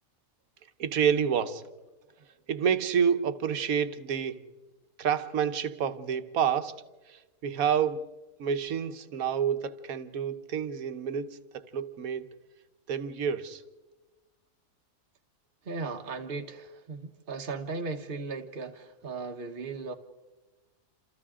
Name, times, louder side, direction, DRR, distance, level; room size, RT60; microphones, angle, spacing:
voice 1, 0.8-1.7 2.5-4.5 5.0-8.1 8.4-12.3 12.9-13.6, right 7 dB, 80° right, 1.4 m, -29 dB
voice 2, 15.6-19.9, right 4 dB, 45° right, 1.2 m, -37 dB
28.5 x 28.0 x 3.7 m
omnidirectional pair, 1.5 m